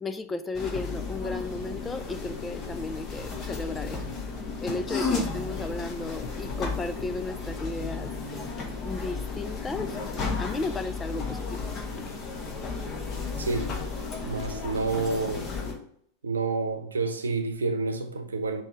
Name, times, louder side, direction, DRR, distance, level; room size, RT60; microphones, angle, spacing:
voice 1, 0.0-4.0 4.6-8.4 8.8-10.0 10.4-11.7, left 3 dB, 15° left, 0.4 m, -34 dB
sound 1, 0.5-15.7, left 4 dB, 30° left, 1.2 m, -33 dB
voice 2, 13.4-13.7 14.2-15.4 16.2-18.6, right 3 dB, 75° right, 0.8 m, -29 dB
6.4 x 3.2 x 4.7 m
figure-of-eight pair, 90°, 0 cm